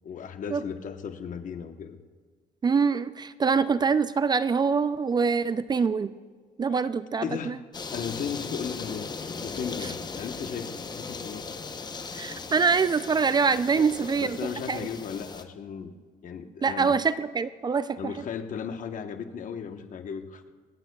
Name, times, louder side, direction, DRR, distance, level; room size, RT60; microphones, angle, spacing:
voice 1, 0.0-2.0 7.2-7.6 7.9-9.1 9.4-11.5 13.7-15.9 16.2-16.9 18.0-20.5, left 7 dB, 50° left, 7 dB, 1.1 m, -36 dB
voice 2, 2.6-6.1 6.6-7.5 12.1-14.4 14.7-14.9 16.6-18.0, right 5 dB, 25° right, 14 dB, 0.4 m, -24 dB
sound 1, 7.7-15.4, left 4 dB, 25° left, 0.8 m, -38 dB
24.5 x 9.0 x 2.3 m, 1.5 s
cardioid pair, 110°, 17 cm